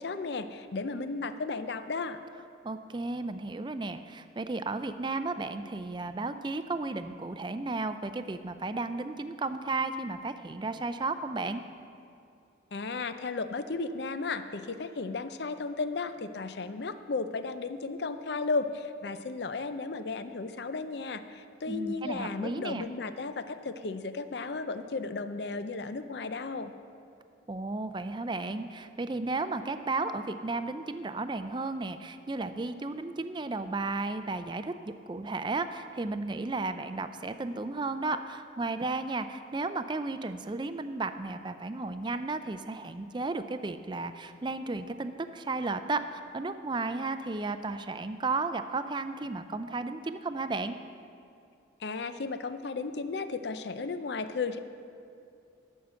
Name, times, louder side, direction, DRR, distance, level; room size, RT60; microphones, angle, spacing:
voice 1, 0.0-2.2 12.7-26.7 51.8-54.6, left 4 dB, 60° left, 10 dB, 0.5 m, -34 dB
voice 2, 2.6-11.6 21.7-22.9 27.5-50.8, right 3 dB, 25° right, 10 dB, 0.4 m, -34 dB
13.0 x 6.4 x 6.9 m, 2.5 s
head